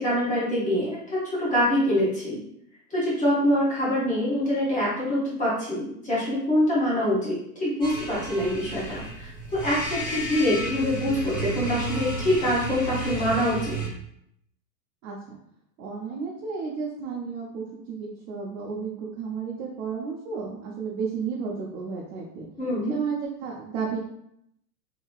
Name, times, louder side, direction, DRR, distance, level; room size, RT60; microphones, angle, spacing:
voice 1, 0.0-2.4 2.9-13.8 22.6-22.9, left 1 dB, 15° left, -7 dB, 0.9 m, -25 dB
sound 1, 7.8-13.9, right 2 dB, 20° right, 1.4 m, -32 dB
voice 2, 15.0-15.4 15.8-22.4 22.9-24.0, right 5 dB, 60° right, -3 dB, 0.8 m, -32 dB
2.9 x 2.8 x 2.3 m, 0.74 s
supercardioid pair, 130°, 49 cm